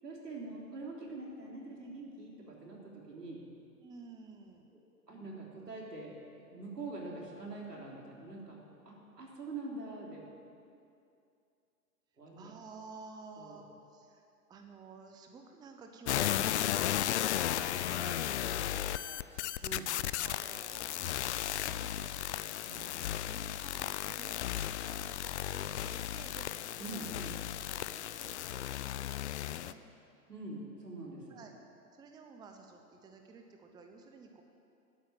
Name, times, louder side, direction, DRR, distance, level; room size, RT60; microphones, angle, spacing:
voice 1, 0.0-3.4 5.1-6.2 6.5-10.2 12.2-12.5 13.4-13.6 19.6-19.9 22.6-22.9 26.8-27.3 30.3-31.4, right 2 dB, 85° right, -2 dB, 3.6 m, -44 dB
voice 2, 3.8-4.7 12.4-19.7 20.1-22.3 22.7-27.1 27.5-29.8 31.3-31.5 31.9-34.4, right 4 dB, 10° right, 4 dB, 0.7 m, -53 dB
sound 1, 16.1-29.7, left 12 dB, 50° left, 0.5 m, -35 dB
12.0 x 9.1 x 8.7 m, 2.6 s
figure-of-eight pair, 115°, 47 cm